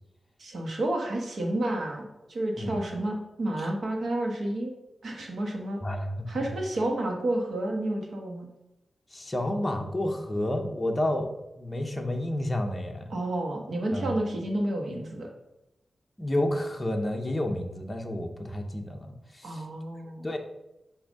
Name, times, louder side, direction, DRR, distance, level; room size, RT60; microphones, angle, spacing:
voice 1, 0.4-4.7 5.0-5.8 6.3-8.5 13.1-15.3 19.4-20.3, right 1 dB, 65° right, 1 dB, 1.3 m, -30 dB
voice 2, 5.8-6.5 9.1-11.3 11.6-13.1 13.9-14.1 16.2-19.1 19.3-19.6 20.2-20.4, left 1 dB, 15° left, 2 dB, 0.6 m, -30 dB
7.0 x 2.7 x 5.2 m, 0.95 s
wide cardioid pair, 145°, 0 cm